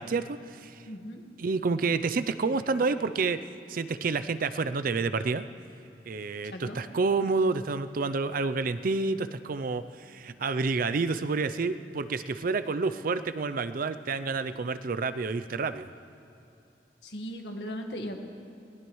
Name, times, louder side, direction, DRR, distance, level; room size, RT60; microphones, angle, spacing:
voice 1, 0.0-0.8 1.4-3.4 3.7-5.5 6.1-15.9, right 4 dB, 55° right, 12 dB, 0.5 m, -29 dB
voice 2, 0.8-1.2 6.4-6.8 17.0-18.2, equal, 75° left, 3 dB, 1.6 m, -38 dB
20.5 x 18.5 x 3.1 m, 2.8 s
head